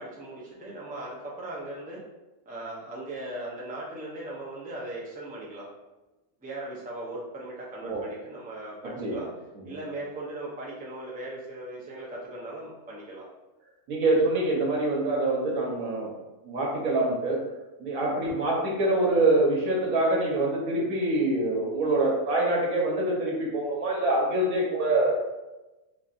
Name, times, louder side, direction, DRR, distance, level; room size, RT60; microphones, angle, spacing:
voice 1, 0.0-2.0 2.5-5.7 6.4-9.3 9.6-13.3 18.2-18.4, right 1 dB, 10° right, -6 dB, 0.5 m, -38 dB
voice 2, 8.8-9.2 9.7-9.8 13.9-16.1 16.4-17.4 17.8-25.2, right 2 dB, 75° right, -3 dB, 1.4 m, -25 dB
4.5 x 2.8 x 2.5 m, 1.1 s
omnidirectional pair, 1.5 m